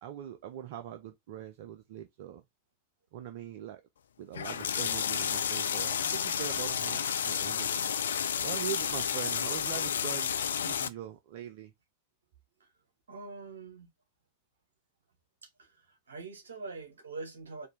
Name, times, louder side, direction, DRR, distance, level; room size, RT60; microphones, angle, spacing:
voice 1, 0.0-2.4 3.1-3.8 4.2-7.9 8.4-10.3 10.6-11.7, right 10 dB, 50° right, 0.5 m, -42 dB
sound 1, 4.3-10.9, left 8 dB, 65° left, 0.4 m, -31 dB
voice 2, 13.1-13.9 15.4-17.7, right 3 dB, 70° right, 1.3 m, -44 dB
4.3 x 2.7 x 3.3 m
figure-of-eight pair, 90°, 0 cm